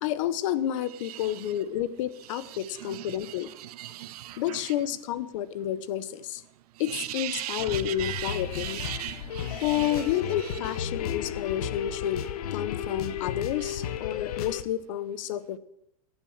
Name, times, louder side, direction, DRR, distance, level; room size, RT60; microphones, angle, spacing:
voice 1, 0.0-3.5 4.4-6.4 6.8-8.8 9.6-15.6, left 11 dB, 55° left, 16 dB, 0.9 m, -30 dB
voice 2, 1.0-1.5 2.3-4.7 6.8-10.1 10.4-10.6 13.6-13.8, right 14 dB, 75° right, 14 dB, 0.6 m, -38 dB
sound 1, 7.6-14.6, left 9 dB, 75° left, 1.2 m, -34 dB
14.5 x 9.0 x 7.2 m, 0.83 s
supercardioid pair, 160°, 20 cm